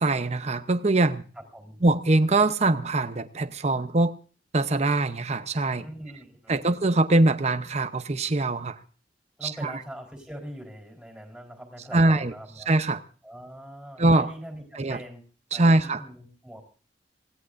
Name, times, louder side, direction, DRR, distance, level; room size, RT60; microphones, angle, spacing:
voice 1, 0.0-1.2 1.8-4.1 4.5-5.8 6.5-8.8 9.4-9.7 11.9-12.3 12.7-13.0 14.0-14.3 14.8-15.0 15.5-16.0, right 2 dB, 40° right, 10 dB, 0.8 m, -22 dB
voice 2, 1.3-1.8 5.8-6.7 9.4-12.7 13.2-15.2 15.5-16.6, equal, 5° right, 1 dB, 4.1 m, -42 dB
26.5 x 16.5 x 2.6 m, 0.38 s
head